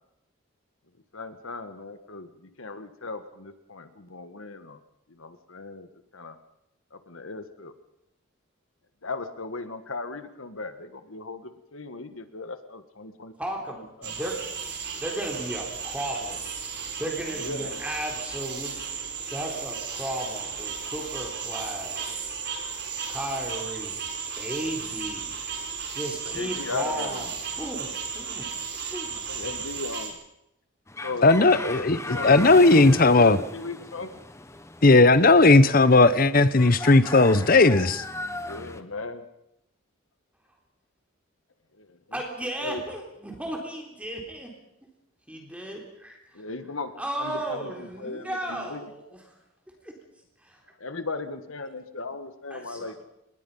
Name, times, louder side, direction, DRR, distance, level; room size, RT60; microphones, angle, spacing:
voice 1, 1.1-4.8 5.1-6.4 6.9-7.7 9.0-13.3 14.0-14.3 17.2-17.7 26.2-27.3 29.3-30.2 31.0-31.3 32.1-32.4 32.7-34.1 38.4-39.3 41.7-42.2 42.6-42.9 46.3-48.9 50.7-53.0, left 3 dB, 75° left, 1.6 m, -37 dB
voice 2, 13.4-14.4 15.0-16.4 17.0-22.0 23.1-24.0 24.4-27.3 27.5-28.5 28.9-29.2 42.1-44.5 45.3-46.4 47.0-49.0 49.8-49.9 50.4-50.6 52.5-52.9, right 1 dB, 5° right, 3.7 m, -35 dB
sound 1, 14.0-30.1, right 6 dB, 50° right, 5.0 m, -35 dB
sound 2, 30.9-38.8, left 2 dB, 15° left, 1.1 m, -38 dB
voice 3, 31.2-33.4 34.8-38.0, left 2 dB, 40° left, 0.9 m, -17 dB
27.0 x 21.0 x 5.6 m
head